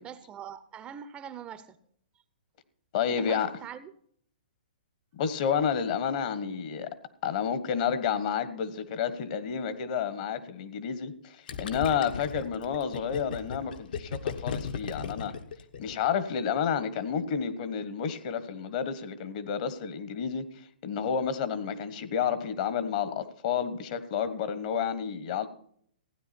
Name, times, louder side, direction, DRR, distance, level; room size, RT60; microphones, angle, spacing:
voice 1, 0.0-1.8 3.1-3.9, right 8 dB, 20° right, 0.7 m, -43 dB
voice 2, 2.9-3.5 5.1-6.9 7.2-15.3 15.8-20.4 20.8-25.5, left 7 dB, 45° left, 1.3 m, -30 dB
Gurgling, 11.5-16.2, left 6 dB, 65° left, 1.3 m, -36 dB
16.0 x 9.6 x 4.4 m
hypercardioid pair, 125°, 5 cm